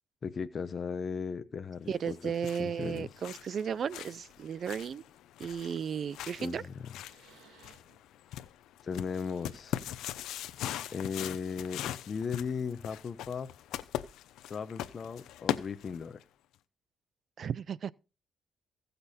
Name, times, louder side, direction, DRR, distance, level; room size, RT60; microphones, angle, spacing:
voice 1, 0.2-2.3 2.6-3.1 6.4-6.7 8.8-9.8 10.9-13.5 14.5-16.2, left 5 dB, 45° left, 0.8 m, -37 dB
voice 2, 1.9-5.0 5.4-6.6 17.4-17.9, right 7 dB, 55° right, 0.5 m, -34 dB
sound 1, 2.0-16.2, left 12 dB, 85° left, 0.7 m, -41 dB
sound 2, 5.9-6.1 6.6-6.7 7.0-8.1 8.7-9.8 10.3-10.5 11.4-12.1 13.2-13.3, right 5 dB, 85° right, 2.7 m, -63 dB
15.5 x 6.8 x 4.2 m
cardioid pair, 90°, 0 cm